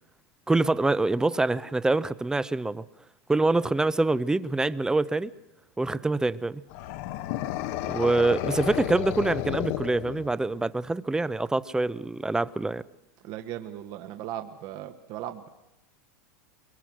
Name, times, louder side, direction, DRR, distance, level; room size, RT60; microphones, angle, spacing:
voice 1, 0.5-2.8 3.3-5.3 5.8-6.6 7.9-12.8, right 2 dB, 5° right, 17 dB, 0.7 m, -25 dB
sound 1, 6.7-10.6, left 14 dB, 60° left, 1.1 m, -32 dB
voice 2, 13.2-15.5, right 11 dB, 50° right, 7 dB, 1.7 m, -37 dB
23.5 x 22.5 x 6.2 m, 0.94 s
supercardioid pair, 125°, 9 cm